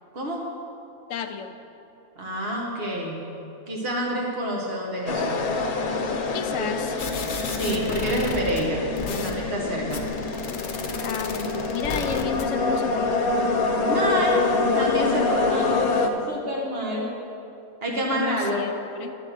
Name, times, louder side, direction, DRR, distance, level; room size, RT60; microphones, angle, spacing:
voice 1, 0.1-0.4 2.2-3.2 3.7-5.4 6.6-6.7 7.4-10.1 13.8-14.5 14.7-15.7 16.1-17.1 17.8-18.6, equal, 45° right, -2 dB, 1.6 m, -28 dB
voice 2, 1.1-1.6 6.3-7.0 7.7-8.2 11.0-13.2 18.1-19.2, left 7 dB, 65° left, 6 dB, 1.0 m, -32 dB
sound 1, 5.1-16.1, left 3 dB, 90° left, 1.3 m, -26 dB
sound 2, 7.0-8.6 9.0-9.3 9.9-12.4, left 4 dB, 50° left, 0.6 m, -32 dB
11.5 x 4.2 x 7.9 m, 2.8 s
omnidirectional pair, 1.5 m